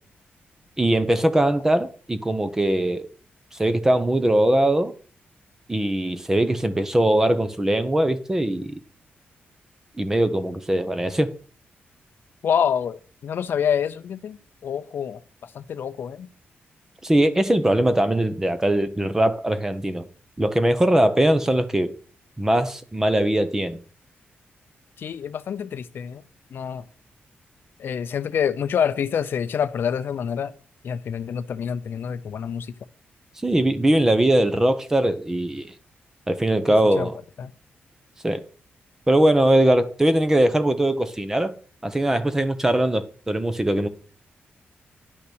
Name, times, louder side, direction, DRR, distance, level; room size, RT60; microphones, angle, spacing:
voice 1, 0.8-3.1 3.6-4.9 5.7-8.7 10.0-11.3 17.0-20.1 20.4-21.9 22.4-23.8 33.4-35.7 36.3-37.2 38.2-38.4 39.1-41.5 41.8-43.9, right 1 dB, 10° right, 0.8 m, -21 dB
voice 2, 12.4-16.3 25.0-26.2 26.5-26.8 27.8-30.5 30.8-32.7 37.0-37.1 37.4-37.5, left 8 dB, 60° left, 0.6 m, -27 dB
10.5 x 5.7 x 6.3 m
wide cardioid pair, 160°, 4 cm